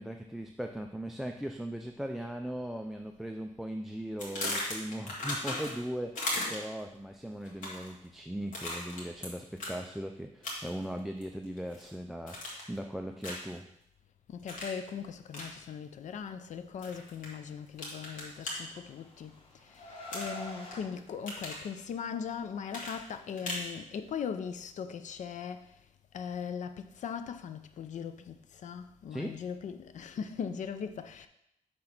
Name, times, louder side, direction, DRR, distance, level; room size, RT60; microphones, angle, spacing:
voice 1, 0.0-12.4 12.7-13.7 29.1-29.4, equal, ahead, 0.3 m, -39 dB
sound 1, 4.2-5.9 6.2-6.8 7.5-7.9 8.5-9.3 9.6-9.8 10.4-10.8 11.2-11.9 12.3-12.8 13.2-13.5 14.5-14.8 15.3-15.5 16.8-17.3 17.8-18.5 20.1-20.8 21.1-21.6 22.7-23.7, left 2 dB, 90° left, 1.9 m, -36 dB
voice 2, 14.3-25.8 26.1-31.3, left 7 dB, 70° left, 0.5 m, -39 dB
Car, 18.3-20.8, left 1 dB, 45° left, 1.6 m, -45 dB
5.9 x 3.8 x 5.9 m
wide cardioid pair, 140°, 13 cm